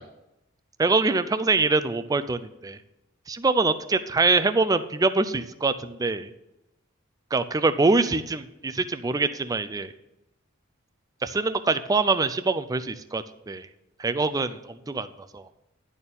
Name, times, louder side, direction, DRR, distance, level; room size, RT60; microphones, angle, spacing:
voice 1, 0.8-2.8 3.3-3.7 4.1-6.3 7.3-9.9 11.2-13.7 14.0-15.1 15.3-15.4, right 3 dB, 15° right, 11 dB, 0.4 m, -24 dB
10.5 x 4.3 x 7.0 m, 0.94 s
head